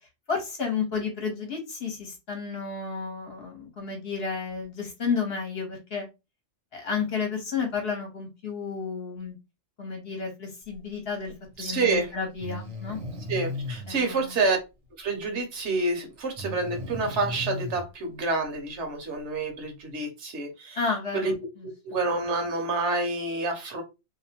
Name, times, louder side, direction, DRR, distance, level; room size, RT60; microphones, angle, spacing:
voice 1, 0.3-6.1 6.7-9.3 9.8-11.3 11.6-13.0 13.9-14.4 20.7-21.3, left 5 dB, 55° left, 1.0 m, -31 dB
Breathing, 11.5-11.6 12.4-13.9 16.4-17.8, left 2 dB, 85° right, 1.3 m, -35 dB
voice 2, 11.6-12.1 13.3-14.6 15.0-20.8 21.1-21.3 21.6-23.8, right 3 dB, 65° right, 1.0 m, -28 dB
2.7 x 2.1 x 2.8 m
omnidirectional pair, 1.4 m